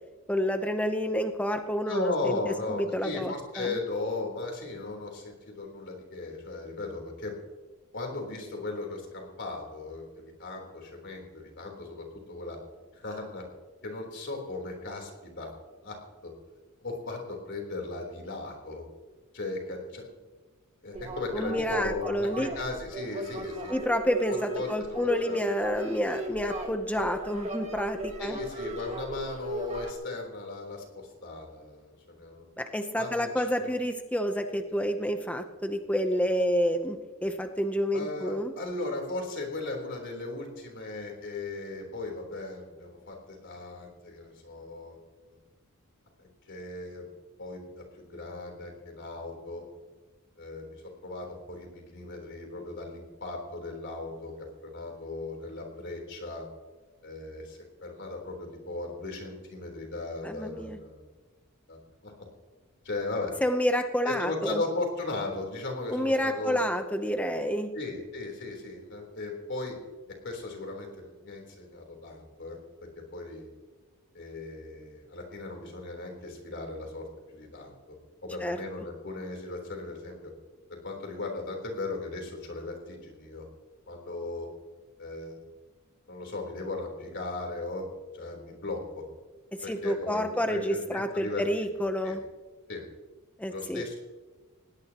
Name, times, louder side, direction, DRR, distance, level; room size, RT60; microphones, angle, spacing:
voice 1, 0.3-3.8 21.3-22.5 23.7-28.4 32.6-38.5 60.2-60.8 63.4-64.6 65.9-67.7 78.4-78.6 89.7-92.2 93.4-93.8, equal, 5° left, 6 dB, 0.7 m, -29 dB
voice 2, 1.9-7.3 7.9-12.6 13.0-13.4 13.8-15.5 15.8-16.3 16.8-18.8 19.3-20.1 20.8-23.7 24.3-25.4 28.2-32.4 33.0-33.7 37.9-45.0 46.5-47.1 47.4-49.6 50.4-50.8 51.0-56.5 57.0-61.0 61.7-62.1 62.8-63.3 64.0-66.6 67.7-69.8 70.2-72.6 73.1-73.5 74.1-77.1 77.3-78.0 78.2-80.2 80.8-83.5 83.9-84.5 85.0-85.4 86.1-87.9 88.1-89.0 89.6-91.4 92.0-92.2 92.7-92.8 93.5-94.0, left 3 dB, 55° left, 2 dB, 3.7 m, -37 dB
sound 1, 20.9-29.9, right 1 dB, 30° right, 1.9 m, -37 dB
20.0 x 17.5 x 3.0 m, 1.3 s
head